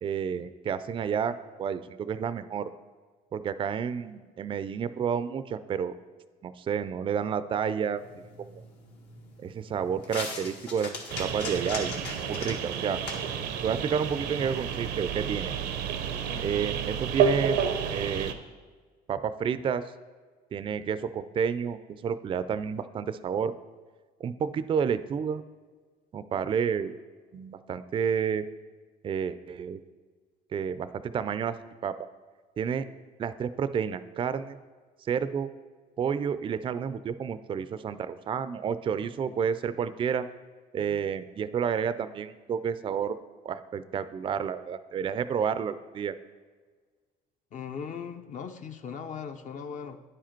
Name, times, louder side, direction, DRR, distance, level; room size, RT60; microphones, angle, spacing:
voice 1, 0.0-2.7 3.3-5.9 6.4-8.6 9.4-10.9 11.2-11.9 12.3-13.0 13.6-15.5 16.4-17.6 17.9-18.3 19.1-19.8 20.5-23.5 24.2-25.4 26.1-26.9 27.3-28.4 29.0-29.8 30.5-31.6 31.8-31.9 32.6-32.9 33.2-34.6 35.1-35.5 36.0-40.3 40.7-43.2 43.4-46.1, right 7 dB, 30° right, 13 dB, 0.3 m, -30 dB
sound 1, 8.0-14.9, left 3 dB, 80° left, 1.5 m, -41 dB
sound 2, 11.1-18.3, right 7 dB, 85° right, 0.7 m, -30 dB
voice 2, 47.5-50.0, left 6 dB, 45° left, 7 dB, 0.5 m, -39 dB
9.8 x 4.9 x 4.4 m, 1.5 s
cardioid pair, 110°, 17 cm